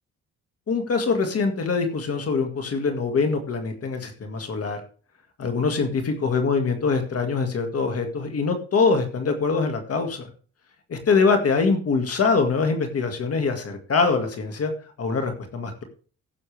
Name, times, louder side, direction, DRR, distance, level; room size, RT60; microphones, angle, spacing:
voice 1, 0.7-4.8 5.4-10.3 10.9-14.7 15.0-15.8, left 4 dB, 50° left, 6 dB, 2.0 m, -23 dB
16.0 x 6.9 x 3.4 m, 0.39 s
cardioid pair, 90°, 30 cm